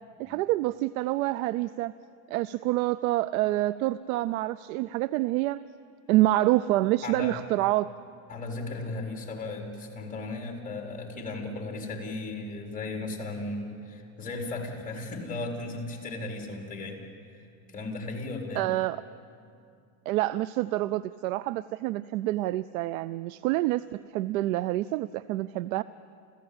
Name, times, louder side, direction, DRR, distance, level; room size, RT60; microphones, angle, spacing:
voice 1, 0.2-1.9 2.3-5.6 6.1-7.9 18.6-19.0 20.1-25.8, right 16 dB, 85° right, 17 dB, 0.6 m, -27 dB
voice 2, 7.0-7.4 8.3-17.0 17.7-18.7, left 2 dB, 20° left, 1 dB, 4.5 m, -36 dB
29.5 x 15.0 x 8.8 m, 2.4 s
supercardioid pair, 120°, 41 cm